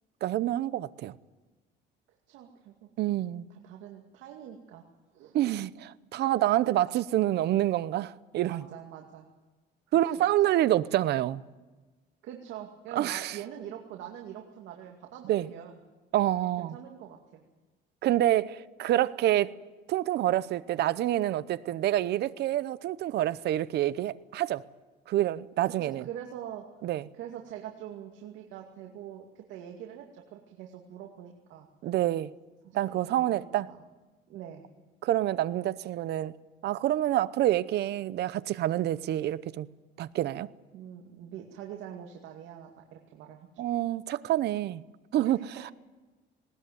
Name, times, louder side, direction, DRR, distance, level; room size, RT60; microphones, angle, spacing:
voice 1, 0.2-1.1 3.0-3.5 5.3-8.6 9.9-11.4 12.9-13.4 15.3-15.5 16.1-16.8 18.0-19.6 19.9-24.6 25.1-26.1 26.8-27.0 31.8-32.3 32.7-33.7 35.0-36.3 36.6-39.7 40.0-40.5 43.6-44.8 45.1-45.4, right 13 dB, 55° right, 0.8 m, -27 dB
voice 2, 2.3-2.9 3.5-4.8 5.1-5.4 8.5-9.3 9.9-10.3 12.2-15.8 16.6-17.4 25.8-26.7 27.1-31.7 32.6-33.8 34.3-34.7 40.7-43.5 45.2-45.5, right 10 dB, 75° right, 2.4 m, -44 dB
20.0 x 19.5 x 9.4 m
cardioid pair, 145°, 20 cm